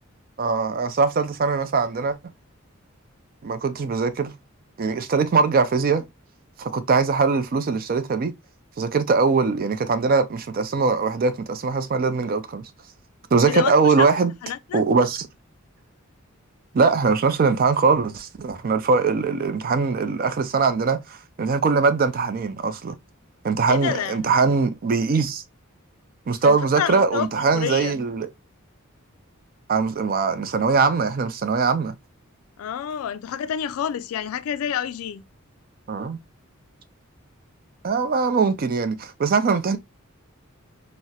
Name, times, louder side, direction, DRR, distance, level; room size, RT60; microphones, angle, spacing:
voice 1, 0.4-2.2 3.4-4.3 4.8-6.0 6.6-8.3 8.8-12.7 13.3-14.3 14.7-15.3 16.7-23.0 23.4-25.4 26.3-28.3 29.7-31.9 35.9-36.2 37.8-39.8, right 4 dB, 45° right, 0.4 m, -21 dB
voice 2, 13.5-14.1 14.4-14.8 23.7-24.4 26.4-27.9 32.6-35.2, left 9 dB, 80° left, 0.3 m, -29 dB
4.1 x 2.1 x 2.2 m
head